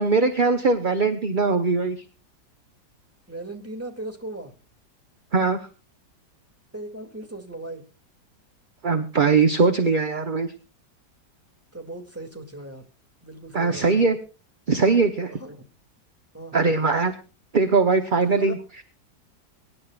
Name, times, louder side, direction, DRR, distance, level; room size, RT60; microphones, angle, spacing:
voice 1, 0.0-2.0 5.3-5.6 8.8-10.5 13.5-14.2 14.7-15.3 16.5-17.1 17.5-18.6, right 4 dB, 35° right, 7 dB, 0.9 m, -20 dB
voice 2, 3.3-4.5 6.7-7.8 11.7-12.9 13.2-14.1 15.4-15.6 16.3-16.7 18.1-18.5, right 2 dB, 10° right, 4 dB, 2.3 m, -37 dB
23.5 x 11.0 x 2.4 m, 0.35 s
omnidirectional pair, 1.9 m